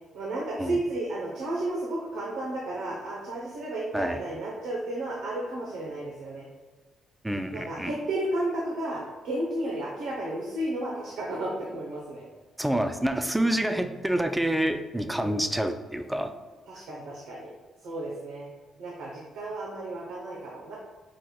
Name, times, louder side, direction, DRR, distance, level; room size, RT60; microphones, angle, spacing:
voice 1, 0.1-6.5 7.5-12.3 15.1-15.4 16.7-17.5 17.8-18.5 18.8-20.7, right 1 dB, 85° right, -5 dB, 0.8 m, -33 dB
voice 2, 7.2-7.9 12.6-16.3, right 1 dB, 5° right, 8 dB, 0.4 m, -27 dB
4.8 x 4.2 x 2.3 m, 1.3 s
cardioid pair, 90°, 0 cm